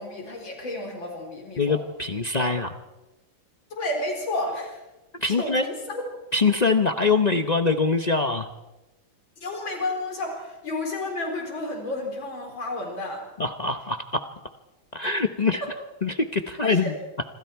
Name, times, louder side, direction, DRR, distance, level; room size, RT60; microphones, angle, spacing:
voice 1, 0.0-1.8 2.4-2.5 3.7-4.8 5.4-6.0 9.4-13.2 15.6-15.7 16.6-16.9, left 2 dB, 75° left, 1 dB, 4.9 m, -31 dB
voice 2, 1.6-2.7 5.2-5.7 6.3-8.5 13.4-14.3 14.9-15.6 16.0-17.0, left 4 dB, 55° left, 8 dB, 0.4 m, -23 dB
26.5 x 26.0 x 4.6 m, 1.1 s
omnidirectional pair, 2.1 m